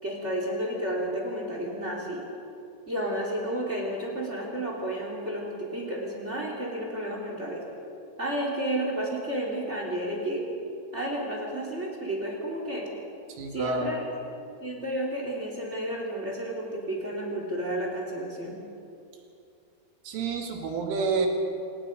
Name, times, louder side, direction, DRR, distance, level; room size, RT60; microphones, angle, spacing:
voice 1, 0.0-2.2 2.9-7.6 8.2-10.4 10.9-12.8 13.5-14.1 14.6-18.6, right 1 dB, 20° right, -1 dB, 2.5 m, -31 dB
voice 2, 13.3-13.9 20.1-21.3, right 4 dB, 80° right, 2 dB, 4.7 m, -29 dB
27.5 x 18.5 x 5.3 m, 2.6 s
omnidirectional pair, 5.6 m